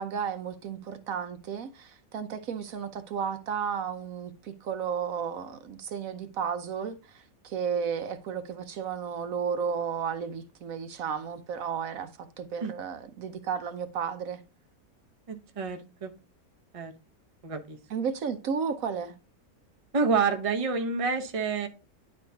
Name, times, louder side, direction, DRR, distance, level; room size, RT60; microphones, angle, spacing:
voice 1, 0.0-14.4 17.9-19.1, right 7 dB, 65° right, 1.1 m, -33 dB
voice 2, 15.3-16.1 16.7-16.9 17.4-17.8 19.9-21.7, right 5 dB, 30° right, 0.8 m, -28 dB
10.5 x 4.3 x 2.7 m
omnidirectional pair, 1.6 m